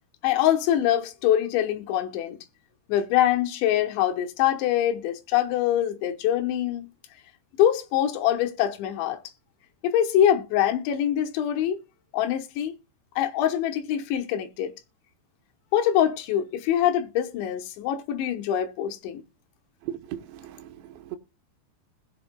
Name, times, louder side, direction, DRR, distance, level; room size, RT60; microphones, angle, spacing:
voice 1, 0.2-2.4 2.9-6.9 7.6-9.2 9.8-11.8 12.1-12.7 13.2-14.7 15.7-19.2, left 11 dB, 80° left, 3.4 m, -24 dB
voice 2, 19.8-21.2, right 11 dB, 75° right, 3.2 m, -38 dB
20.0 x 7.4 x 2.2 m
omnidirectional pair, 5.2 m